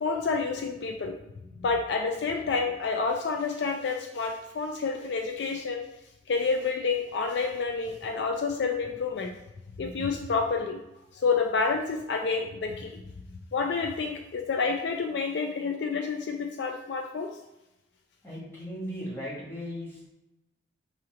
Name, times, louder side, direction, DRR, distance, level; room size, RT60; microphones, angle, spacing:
voice 1, 0.0-1.2 1.6-5.9 6.3-9.4 9.8-10.8 11.1-13.0 13.5-17.4, left 4 dB, 60° left, 3 dB, 0.3 m, -29 dB
voice 2, 18.2-20.1, equal, 15° left, -8 dB, 1.6 m, -37 dB
4.9 x 3.7 x 2.9 m, 0.95 s
head